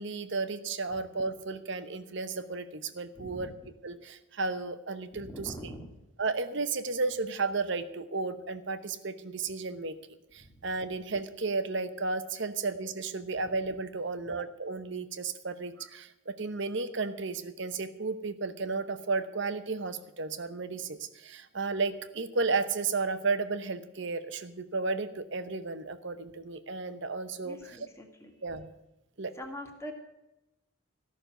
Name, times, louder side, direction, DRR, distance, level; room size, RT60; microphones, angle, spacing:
voice 1, 0.0-3.5 3.8-5.7 6.2-9.9 10.3-27.8 28.4-28.7 29.2-29.3, right 3 dB, 60° right, 10 dB, 1.0 m, -33 dB
voice 2, 3.2-3.5 5.1-6.0 10.4-10.5 27.4-28.6 29.4-29.9, equal, 15° left, 3 dB, 2.0 m, -44 dB
14.5 x 6.6 x 9.0 m, 0.93 s
head